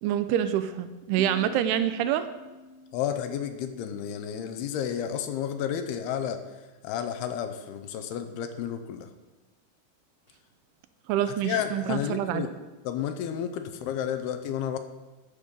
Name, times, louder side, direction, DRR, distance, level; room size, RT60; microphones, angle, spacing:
voice 1, 0.0-2.3 11.1-12.4, right 10 dB, 80° right, 11 dB, 2.5 m, -26 dB
Piano, 1.2-4.6, equal, 65° right, 2.4 m, -46 dB
voice 2, 2.9-6.4 6.8-9.1 11.4-12.5 12.8-14.8, left 9 dB, 80° left, 8 dB, 2.7 m, -31 dB
14.0 x 6.5 x 5.3 m, 1.1 s
omnidirectional pair, 4.8 m